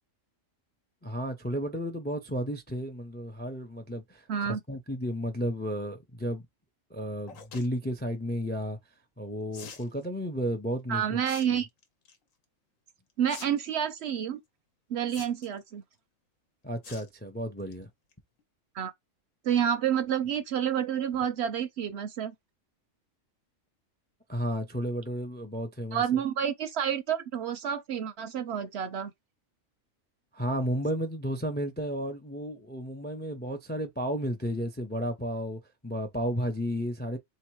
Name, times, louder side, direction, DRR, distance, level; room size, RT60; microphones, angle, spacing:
voice 1, 1.0-4.3 4.7-6.5 6.9-8.8 9.2-11.2 16.6-17.9 24.3-26.2 30.3-37.2, equal, 15° left, 0.3 m, -33 dB
voice 2, 4.3-4.6 10.9-11.7 13.2-14.4 14.9-15.8 18.7-18.9 19.4-22.3 25.9-29.1, right 9 dB, 65° right, 0.7 m, -29 dB
sound 1, 7.3-7.7 9.5-9.9 11.2-11.5 11.8-12.2 13.3-13.4 13.7-13.8 15.1-15.6 16.8-17.1 17.5-17.7 18.1-18.2 18.4-18.5, left 6 dB, 80° left, 1.3 m, -45 dB
3.4 x 2.9 x 4.6 m
omnidirectional pair, 1.4 m